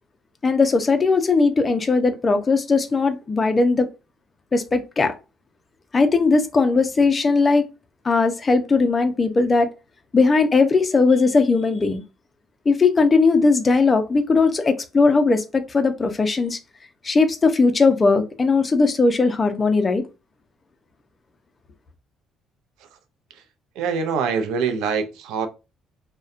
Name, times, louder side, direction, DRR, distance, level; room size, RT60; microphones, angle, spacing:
voice 1, 0.4-3.9 4.5-5.2 5.9-7.7 8.0-9.7 10.1-12.0 12.7-16.6 17.0-20.0, left 4 dB, 25° left, 0.4 m, -18 dB
voice 2, 23.7-25.5, right 5 dB, 85° right, 0.3 m, -25 dB
2.6 x 2.1 x 2.4 m
cardioid pair, 110°, 0 cm